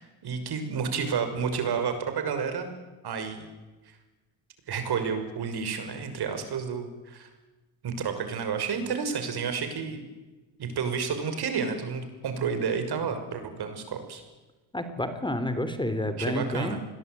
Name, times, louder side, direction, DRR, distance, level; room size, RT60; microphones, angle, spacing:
voice 1, 0.0-2.7 3.0-3.5 3.9-4.0 4.7-7.3 7.8-10.0 10.6-14.2 16.2-16.8, right 6 dB, 60° right, 8 dB, 6.3 m, -30 dB
voice 2, 14.7-16.8, left 1 dB, 10° left, 10 dB, 3.3 m, -29 dB
27.5 x 21.0 x 9.6 m, 1.2 s
supercardioid pair, 85°, 43 cm